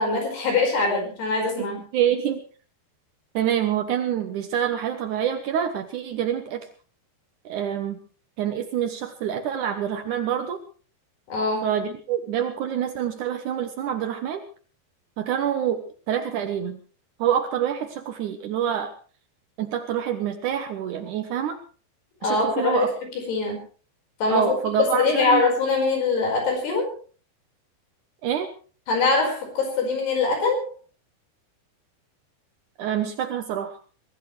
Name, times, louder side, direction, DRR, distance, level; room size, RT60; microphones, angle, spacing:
voice 1, 0.0-1.8 11.3-11.7 22.2-22.9 23.2-23.6 24.2-27.0 28.9-30.7, left 3 dB, 65° left, 3 dB, 7.1 m, -23 dB
voice 2, 1.9-2.4 3.3-6.6 7.4-8.0 8.4-10.6 11.6-14.4 15.2-16.8 17.2-18.9 19.6-21.6 22.2-22.9 24.3-25.4 28.2-28.5 32.8-33.8, right 9 dB, 85° right, 7 dB, 1.7 m, -26 dB
23.0 x 16.0 x 3.3 m, 0.39 s
omnidirectional pair, 5.1 m